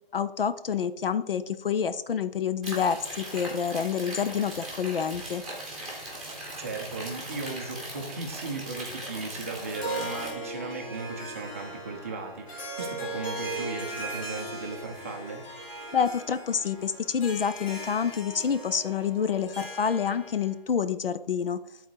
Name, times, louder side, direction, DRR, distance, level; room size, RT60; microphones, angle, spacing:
voice 1, 0.1-5.4 15.9-21.6, left 7 dB, 70° left, 12 dB, 0.6 m, -28 dB
sound 1, 2.6-10.3, right 1 dB, ahead, 1.1 m, -39 dB
voice 2, 6.6-15.4, right 3 dB, 15° right, 2 dB, 0.6 m, -36 dB
Harp, 9.6-20.5, right 1 dB, 35° left, 2.4 m, -38 dB
9.4 x 3.9 x 4.6 m, 0.82 s
figure-of-eight pair, 155°, 29 cm